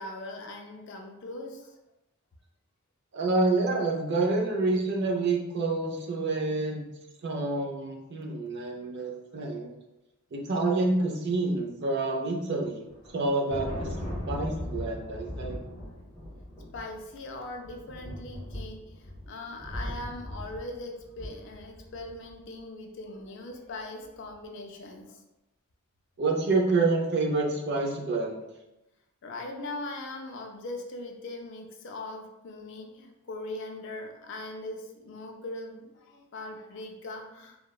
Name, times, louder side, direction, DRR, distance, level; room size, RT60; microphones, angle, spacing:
voice 1, 0.0-1.8 8.9-9.1 16.7-25.2 29.2-37.6, left 2 dB, 55° left, 3 dB, 0.3 m, -40 dB
voice 2, 3.1-6.9 7.2-9.7 10.3-12.8 13.1-13.9 14.3-15.6 26.2-28.4, right 3 dB, 50° right, 0 dB, 0.4 m, -28 dB
Thunder, 12.9-22.3, left 1 dB, 5° right, 0.8 m, -39 dB
2.9 x 2.0 x 2.2 m, 0.94 s
head